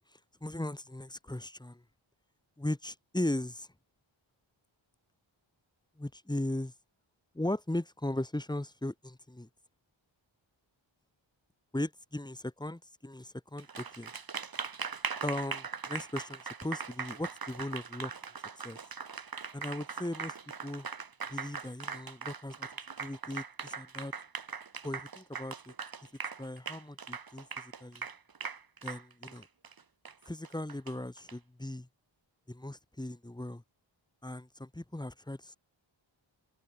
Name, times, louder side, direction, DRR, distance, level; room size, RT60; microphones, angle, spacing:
voice 1, 0.1-1.8 2.6-3.7 6.0-6.7 7.3-9.5 11.7-14.1 15.2-18.1 18.5-18.8 19.5-20.4 20.6-20.9 21.3-22.7 23.0-24.1 24.8-25.7 26.4-28.1 28.8-29.5 30.3-31.9 32.5-33.6 34.2-35.6, left 1 dB, 10° left, 1.1 m, -38 dB
Applause, 13.6-31.3, right 5 dB, 45° right, 1.7 m, -40 dB
open air
wide cardioid pair, 95°, 48 cm